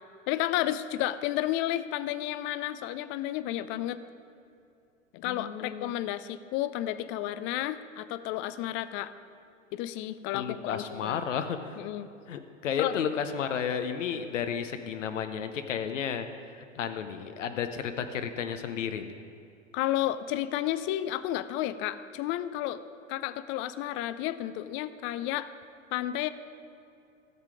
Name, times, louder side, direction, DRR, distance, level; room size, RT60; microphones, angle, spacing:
voice 1, 0.3-4.0 5.1-9.1 9.7-11.2 11.8-12.1 12.8-13.0 19.7-22.8 23.1-25.5 25.9-26.3, left 13 dB, 35° left, 14 dB, 0.4 m, -32 dB
voice 2, 5.2-5.9 10.3-11.8 12.3-19.1, left 7 dB, 75° left, 8 dB, 0.8 m, -33 dB
13.5 x 7.4 x 4.9 m, 2.6 s
hypercardioid pair, 95°, 38 cm